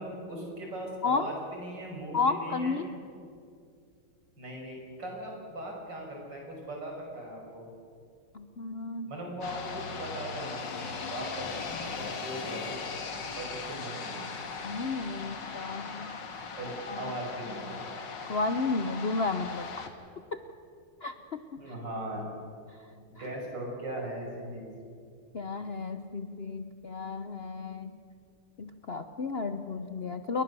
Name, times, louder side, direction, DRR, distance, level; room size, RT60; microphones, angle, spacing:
voice 1, 0.0-2.9 4.4-7.7 9.1-14.4 16.6-17.9 21.6-22.3 23.1-24.7, right 1 dB, 55° right, 0 dB, 6.4 m, -39 dB
voice 2, 2.1-2.9 8.3-9.1 14.6-16.2 16.9-17.1 18.3-19.9 20.3-20.4 21.0-21.6 25.3-27.9 28.6-30.4, left 4 dB, 85° left, 8 dB, 0.5 m, -32 dB
sound 1, 9.4-19.9, left 5 dB, 55° left, 2.4 m, -39 dB
28.5 x 21.5 x 6.9 m, 2.4 s
omnidirectional pair, 2.4 m